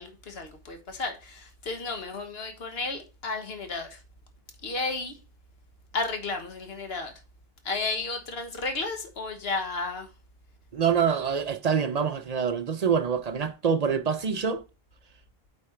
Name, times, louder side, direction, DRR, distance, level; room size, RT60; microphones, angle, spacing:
voice 1, 0.0-4.0 4.6-5.2 5.9-7.1 7.6-10.1, left 3 dB, 75° left, 1.5 m, -33 dB
voice 2, 10.7-14.6, right 7 dB, 50° right, 0.6 m, -25 dB
8.5 x 4.3 x 4.4 m
omnidirectional pair, 1.0 m